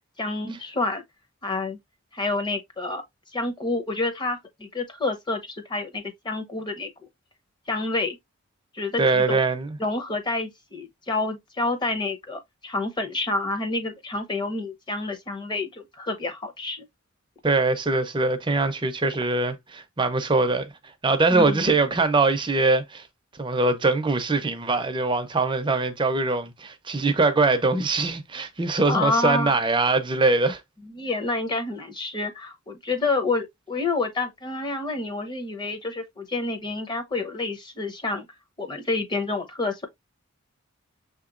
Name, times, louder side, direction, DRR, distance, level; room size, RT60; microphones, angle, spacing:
voice 1, 0.2-1.0 1.4-1.8 2.1-3.0 3.3-6.9 7.7-8.2 8.7-9.4 9.8-16.9 21.3-21.7 28.9-29.6 30.8-38.3 38.6-39.9, left 3 dB, 20° left, 0.7 m, -28 dB
voice 2, 9.0-9.8 17.4-20.7 21.0-23.1 23.4-30.6, right 3 dB, 20° right, 0.5 m, -22 dB
6.4 x 2.9 x 2.4 m
head